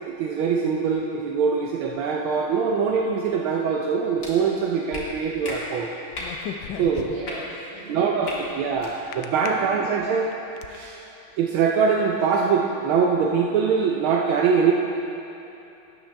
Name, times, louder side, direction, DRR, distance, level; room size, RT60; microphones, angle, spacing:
voice 1, 0.0-5.9 6.8-7.2 7.9-8.3 8.5-10.3 10.7-11.0 11.4-14.7, right 6 dB, 80° right, 0 dB, 1.5 m, -23 dB
sound 1, 4.2-4.3 4.9-5.0 5.4-5.6 6.1-6.3 7.2-7.3 8.2-8.4 8.7-8.9, left 2 dB, 40° left, 2.2 m, -34 dB
sound 2, 6.2-7.4 9.1-9.5 10.1-10.8, left 9 dB, 75° left, 1.1 m, -35 dB
voice 2, 7.0-8.6 9.4-9.9, right 1 dB, 45° right, -6 dB, 2.4 m, -39 dB
13.0 x 10.0 x 3.4 m, 2.8 s
omnidirectional pair, 2.3 m